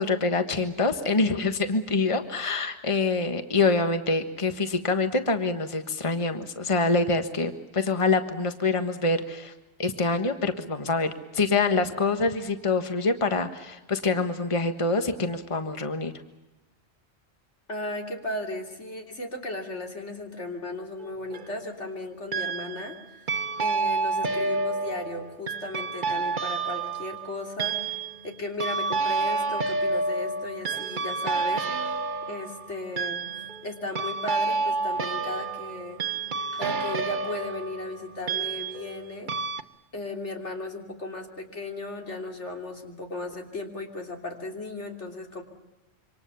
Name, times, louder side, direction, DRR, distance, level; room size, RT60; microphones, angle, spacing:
voice 1, 0.0-9.5 9.8-16.1, left 3 dB, 30° left, 8 dB, 1.5 m, -25 dB
voice 2, 17.7-23.3 23.6-28.0 28.2-32.0 32.3-36.0 36.5-39.3 39.9-45.4, left 2 dB, 85° left, 3 dB, 3.6 m, -36 dB
sound 1, 21.0-21.6 22.3-22.9 23.3-39.0 39.3-39.6, right 4 dB, 45° right, 1.1 m, -29 dB
27.0 x 25.5 x 7.0 m, 1.0 s
omnidirectional pair, 1.2 m